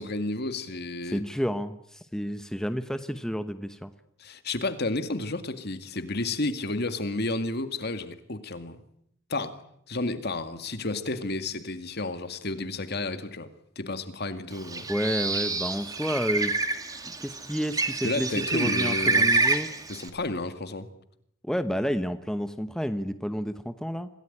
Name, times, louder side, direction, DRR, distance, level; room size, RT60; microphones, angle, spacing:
voice 1, 0.0-1.2 4.2-8.8 9.3-9.5 9.9-13.5 13.8-14.9 18.0-19.6 19.9-20.9, left 2 dB, 55° left, 2.2 m, -31 dB
voice 2, 1.1-3.9 14.9-16.5 17.2-19.7 21.4-24.1, equal, 5° left, 1.0 m, -30 dB
Bird, 14.6-20.1, right 3 dB, 20° right, 2.4 m, -27 dB
27.0 x 18.0 x 9.9 m
head